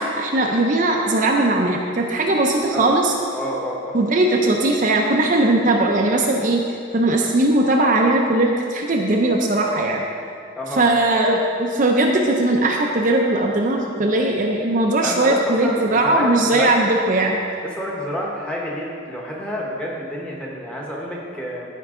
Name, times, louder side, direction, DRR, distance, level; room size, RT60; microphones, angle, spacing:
voice 1, 0.0-3.1 3.9-6.6 6.9-10.0 10.8-17.4, right 2 dB, 40° right, 1 dB, 0.5 m, -19 dB
voice 2, 3.3-3.9 10.6-11.0 15.0-16.7 17.8-21.7, equal, 5° left, -3 dB, 1.0 m, -28 dB
13.5 x 4.6 x 3.7 m, 2.4 s
head